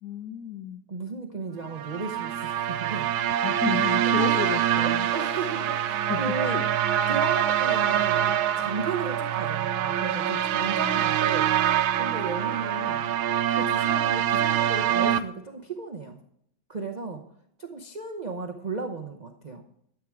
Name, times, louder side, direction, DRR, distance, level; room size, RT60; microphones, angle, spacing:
voice 1, 0.0-0.8 3.4-5.1 6.1-6.7, left 8 dB, 65° left, 8 dB, 1.2 m, -32 dB
voice 2, 0.9-3.1 4.0-4.3 4.8-6.6 7.1-11.5 12.0-13.0 13.5-16.2 16.7-17.2 17.6-19.6, right 3 dB, 65° right, 4 dB, 0.4 m, -35 dB
sound 1, 1.7-15.2, right 10 dB, 85° right, 1.5 m, -25 dB
13.0 x 8.6 x 4.7 m, 0.72 s
omnidirectional pair, 2.2 m